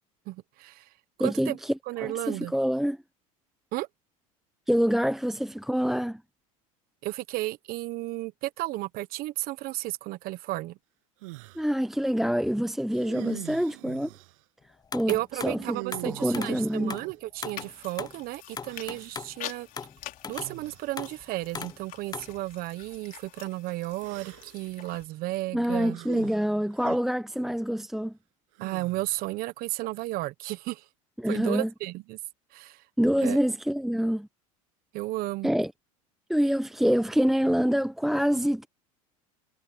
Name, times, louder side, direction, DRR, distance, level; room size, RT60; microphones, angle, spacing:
voice 1, 0.3-0.9 1.2-1.6 1.9-2.5 3.7-3.9 7.0-10.8 15.1-19.7 20.3-26.0 28.6-30.8 31.3-32.2 32.5-32.8 33.2-33.4 34.9-35.5, right 18 dB, 55° right, 1.2 m, -33 dB
voice 2, 1.2-1.7 2.0-3.0 4.7-6.2 11.5-14.1 14.9-15.2 15.4-15.8 16.0-17.0 25.5-28.1 31.2-31.7 33.0-34.3 35.4-35.7 36.3-38.7, equal, ahead, 0.9 m, -26 dB
sound 1, 11.2-11.7 12.9-14.4 15.6-17.9 18.7-19.3 20.4-20.9 21.7-21.9 24.0-24.7 25.9-27.0 28.5-29.4, right 25 dB, 75° right, 7.9 m, -43 dB
sound 2, 14.9-15.6 15.9-16.6 16.9-17.1 17.4-18.2 18.6-19.4 19.8-20.0 20.2-20.6 21.0-21.2 21.5-21.8 22.1-22.4, left 6 dB, 20° left, 0.9 m, -38 dB
sound 3, 17.6-25.1, left 13 dB, 50° left, 4.2 m, -46 dB
hypercardioid pair, 90°, 18 cm